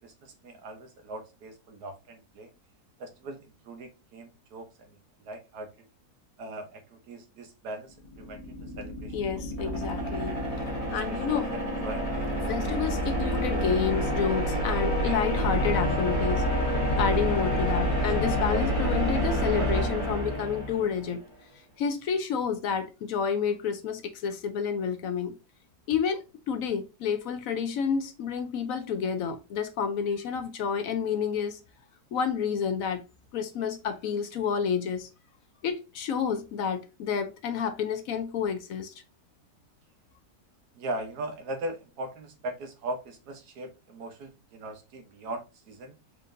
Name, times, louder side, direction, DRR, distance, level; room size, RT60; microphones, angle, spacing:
voice 1, 0.0-2.5 3.0-5.7 6.4-10.4 10.9-12.3 13.2-14.0 14.5-15.4 16.5-17.2 17.8-18.1 18.5-19.1 19.6-19.7 40.7-45.9, right 1 dB, 75° right, 1.5 m, -40 dB
sound 1, 8.0-21.1, equal, 20° left, 1.8 m, -28 dB
voice 2, 9.1-10.3 10.9-11.5 12.5-16.5 17.0-21.2 21.8-25.3 25.9-31.6 32.1-33.0 33.3-35.1 35.6-38.9, left 7 dB, 70° left, 0.9 m, -29 dB
4.3 x 3.7 x 2.5 m
omnidirectional pair, 1.7 m